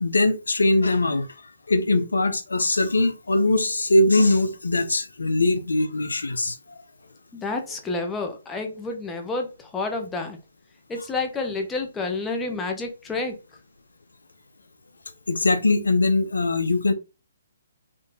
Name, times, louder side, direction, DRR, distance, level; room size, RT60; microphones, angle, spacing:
voice 1, 0.0-1.3 1.7-6.6 15.3-16.9, left 2 dB, 85° left, 0.6 m, -21 dB
voice 2, 7.3-10.4 10.9-13.4, left 3 dB, 10° left, 0.9 m, -29 dB
3.8 x 2.7 x 3.6 m
hypercardioid pair, 140°, 0 cm